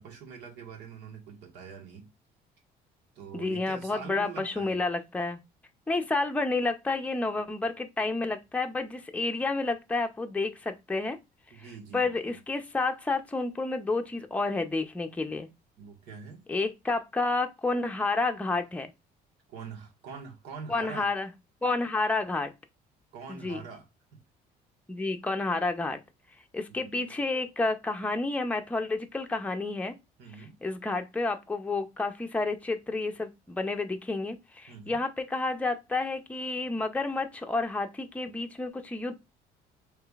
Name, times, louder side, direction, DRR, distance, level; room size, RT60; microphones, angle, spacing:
voice 1, 0.0-2.1 3.1-4.8 11.5-12.4 15.8-16.4 19.5-21.1 23.1-24.2 26.7-27.1 30.2-30.6 34.7-35.0, right 6 dB, 85° right, 1.5 m, -44 dB
voice 2, 3.3-5.4 5.9-11.2 11.9-15.5 16.5-18.9 20.7-21.3 21.6-22.5 23.3-23.6 24.9-26.0 26.5-29.9 30.6-39.1, left 3 dB, 10° left, 0.6 m, -30 dB
4.8 x 3.3 x 2.4 m
cardioid pair, 110°, 17 cm